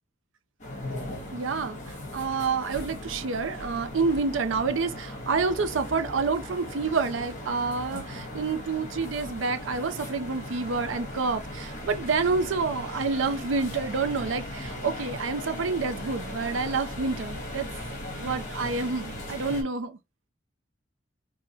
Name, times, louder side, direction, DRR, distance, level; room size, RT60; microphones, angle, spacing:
sound 1, 0.6-19.6, left 1 dB, 40° left, 1.3 m, -38 dB
voice 1, 1.3-17.7 18.2-20.0, right 4 dB, 85° right, 0.5 m, -28 dB
4.6 x 2.1 x 2.7 m
head